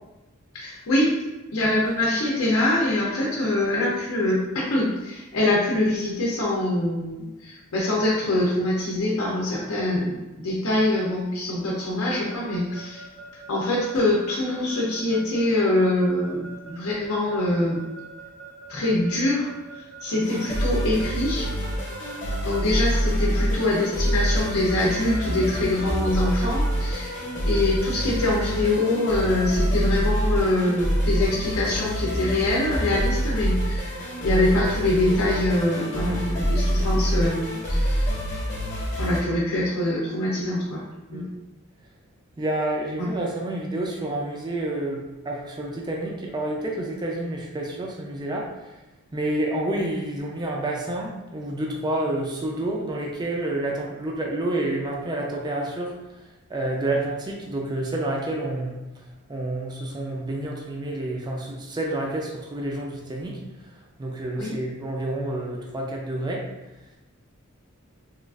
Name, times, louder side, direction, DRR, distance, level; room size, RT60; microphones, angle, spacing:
voice 1, 0.5-1.1 1.5-13.0 13.5-17.8 18.7-21.5 22.4-27.1 27.4-38.1 39.0-40.8 41.1-41.2 43.0-43.2 64.4-64.5, left 1 dB, 75° left, -4 dB, 0.5 m, -24 dB
Keyboard (musical) / Alarm, 12.1-28.7, right 4 dB, 75° right, 0.5 m, -43 dB
sound 1, 20.2-39.2, equal, 35° left, 0.7 m, -26 dB
voice 2, 42.4-48.5 49.1-55.9 56.5-58.7 59.3-63.4 64.0-66.4, right 1 dB, 20° right, -1 dB, 0.3 m, -29 dB
3.0 x 2.3 x 2.3 m, 1.0 s
head